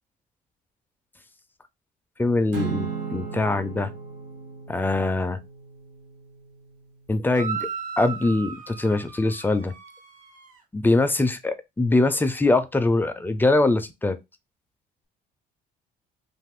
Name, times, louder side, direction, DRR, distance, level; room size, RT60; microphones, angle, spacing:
voice 1, 2.2-3.9 4.7-5.4 7.1-7.7 8.0-9.7 10.7-14.2, left 2 dB, 10° left, 0.3 m, -23 dB
Acoustic guitar / Strum, 2.5-7.0, right 6 dB, 85° right, 0.9 m, -36 dB
sound 1, 7.3-10.6, right 6 dB, 50° right, 0.9 m, -36 dB
2.5 x 2.4 x 3.4 m
cardioid pair, 110°, 17 cm